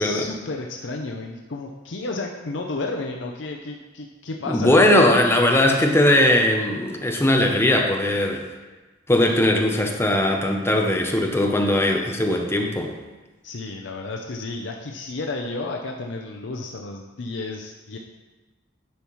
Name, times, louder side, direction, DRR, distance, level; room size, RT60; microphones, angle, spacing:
voice 1, 0.0-5.1 13.4-18.0, left 3 dB, 70° left, 1 dB, 0.6 m, -32 dB
voice 2, 4.5-8.4 9.1-12.9, left 1 dB, 15° left, 2 dB, 0.7 m, -19 dB
10.5 x 5.7 x 3.1 m, 1.2 s
head